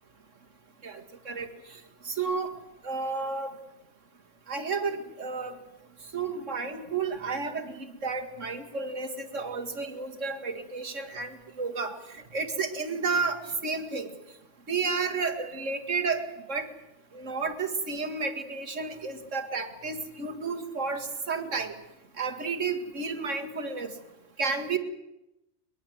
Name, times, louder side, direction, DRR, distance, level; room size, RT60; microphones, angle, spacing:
voice 1, 0.8-1.8 2.0-2.5 2.8-3.5 4.5-5.5 6.1-14.1 14.7-16.7 17.1-21.7 22.2-23.9 24.4-24.8, right 4 dB, 85° right, 8 dB, 2.3 m, -32 dB
23.0 x 21.0 x 7.8 m, 0.90 s
omnidirectional pair, 1.3 m